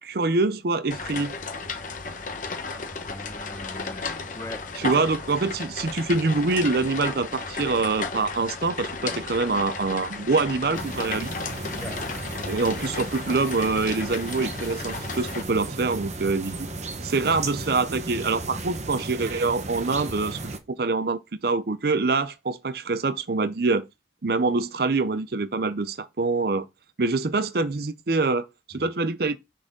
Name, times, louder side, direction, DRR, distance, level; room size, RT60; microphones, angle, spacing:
voice 1, 0.0-1.3 4.8-11.3 12.4-16.7 17.0-23.8 24.2-26.6 27.0-29.4, right 3 dB, 55° right, 0.6 m, -25 dB
sound 1, 0.9-15.4, left 4 dB, 45° left, 1.0 m, -34 dB
voice 2, 3.1-4.1 4.3-5.1 11.8-12.0 28.7-28.8, left 1 dB, 15° left, 0.9 m, -40 dB
sound 2, 10.7-20.6, right 2 dB, 40° right, 0.9 m, -35 dB
6.1 x 4.0 x 5.1 m
head